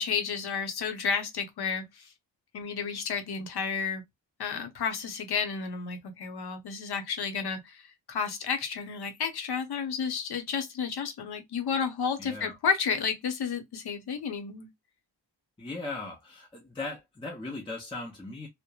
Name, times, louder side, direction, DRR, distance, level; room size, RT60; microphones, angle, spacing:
voice 1, 0.0-2.1 2.5-4.0 4.4-14.7, left 6 dB, 60° left, 0.7 m, -31 dB
voice 2, 12.2-12.6 15.6-18.5, left 2 dB, 10° left, 0.6 m, -38 dB
2.9 x 2.1 x 2.2 m
wide cardioid pair, 150°, 44 cm